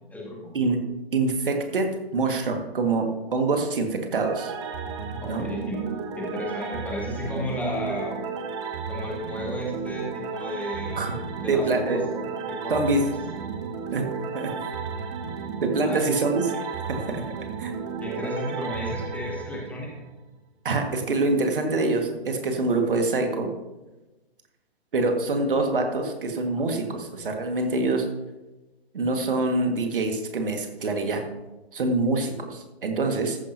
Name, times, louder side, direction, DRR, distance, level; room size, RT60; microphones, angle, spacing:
voice 1, 1.1-4.5 5.3-5.4 11.0-11.1 11.5-12.0 12.7-13.0 13.9-14.1 14.3-14.6 15.6-16.5 16.9-17.2 17.6-17.7 20.6-23.5 24.9-28.1 28.9-31.2 31.7-33.4, right 3 dB, 55° right, 4 dB, 1.8 m, -25 dB
sound 1, 4.1-20.2, right 6 dB, 30° right, 0.9 m, -33 dB
voice 2, 5.2-5.8 6.2-8.2 8.9-12.0 12.4-12.8 15.8-16.0 18.0-20.0, left 1 dB, 5° left, -2 dB, 1.6 m, -33 dB
14.0 x 10.0 x 2.8 m, 1.1 s
figure-of-eight pair, 125°, 31 cm